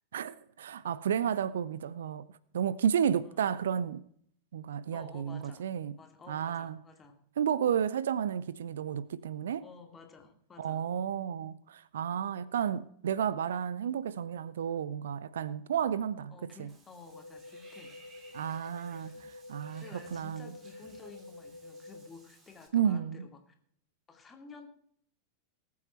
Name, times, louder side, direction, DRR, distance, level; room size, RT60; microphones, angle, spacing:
voice 1, 0.1-2.3 2.5-4.0 4.5-6.0 6.3-6.8 7.4-9.6 10.6-16.3 16.6-16.7 18.3-20.5 22.7-23.3, right 8 dB, 60° right, 0.5 m, -32 dB
voice 2, 3.2-3.5 4.9-5.7 6.0-7.2 9.6-10.9 16.3-18.0 19.8-23.4 24.1-24.7, left 4 dB, 20° left, 2.4 m, -52 dB
Water / Bathtub (filling or washing), 16.7-22.7, right 2 dB, 25° right, 3.1 m, -59 dB
sound 1, 17.1-22.1, left 2 dB, 90° right, 1.0 m, -49 dB
19.5 x 8.5 x 4.3 m
figure-of-eight pair, 90°, 0 cm